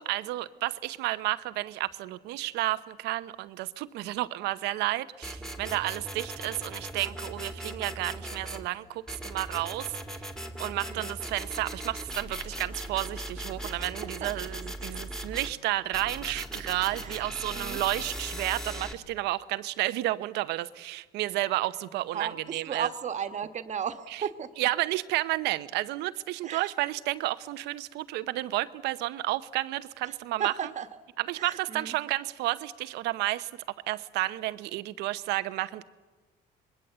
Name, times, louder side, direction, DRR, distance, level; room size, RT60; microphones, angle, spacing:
voice 1, 0.0-10.0 10.6-22.9 24.1-24.2 24.6-30.7 31.2-35.8, right 17 dB, 90° right, 14 dB, 0.8 m, -31 dB
sound 1, 5.2-8.7 9.1-15.5 15.9-18.9, right 1 dB, 5° left, 2.1 m, -39 dB
voice 2, 17.5-17.8 22.1-24.5 26.4-26.6 30.4-30.9 31.4-31.9, right 8 dB, 45° right, 10 dB, 1.4 m, -35 dB
25.5 x 21.5 x 8.0 m, 1.3 s
cardioid pair, 110°, 17 cm